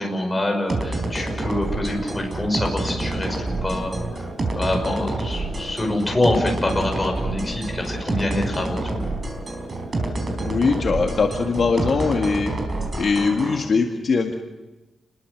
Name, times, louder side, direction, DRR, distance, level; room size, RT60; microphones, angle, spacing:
voice 1, 0.0-3.4 3.6-4.0 4.5-9.0, left 1 dB, 15° left, 2 dB, 5.5 m, -25 dB
sound 1, 0.7-13.6, right 2 dB, 30° right, 4.5 m, -27 dB
voice 2, 10.4-12.5 13.0-14.3, left 4 dB, 45° left, 1 dB, 1.9 m, -21 dB
29.0 x 21.5 x 6.6 m, 1.1 s
wide cardioid pair, 175°, 0 cm